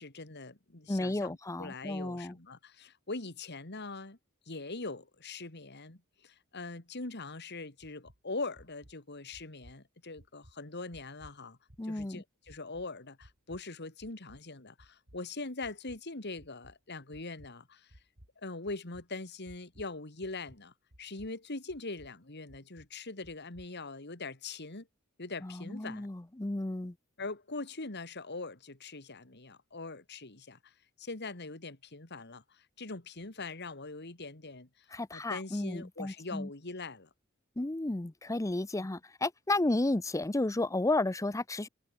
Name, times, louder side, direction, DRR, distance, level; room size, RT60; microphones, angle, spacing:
voice 1, 0.0-4.2 4.5-11.6 11.8-18.0 18.4-24.9 25.2-26.1 27.2-37.1 38.8-38.9, left 3 dB, 55° left, 2.6 m, -42 dB
voice 2, 0.9-2.4 11.8-12.2 25.4-26.9 34.9-36.5 37.6-41.7, left 2 dB, 15° left, 0.6 m, -32 dB
sound 1, 7.8-8.2 8.5-8.9 9.3-9.8 10.2-10.5 10.9-11.4 11.7-12.1 12.5-12.9 13.2-13.6 14.0-14.4 14.8-15.2 15.6-16.0 16.4-16.7 17.1-17.5 17.9-18.3 18.7-19.1 19.5-20.0 20.2-20.6 20.9-21.3 21.7-22.1 22.5-22.9 23.2-23.7, equal, 55° right, 4.3 m, -57 dB
head